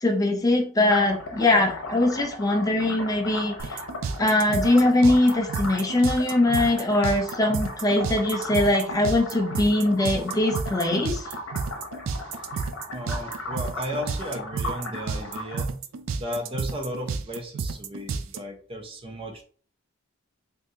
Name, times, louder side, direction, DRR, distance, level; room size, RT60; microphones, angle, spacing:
voice 1, 0.0-3.8 4.2-11.2, left 1 dB, 20° left, 2 dB, 0.5 m, -22 dB
sound 1, 0.8-15.6, left 1 dB, 85° left, 0.8 m, -37 dB
sound 2, 3.6-18.4, right 5 dB, 70° right, 0.4 m, -31 dB
voice 2, 12.9-15.8 16.2-19.4, equal, 30° right, 4 dB, 0.6 m, -35 dB
3.6 x 2.6 x 2.7 m, 0.44 s
head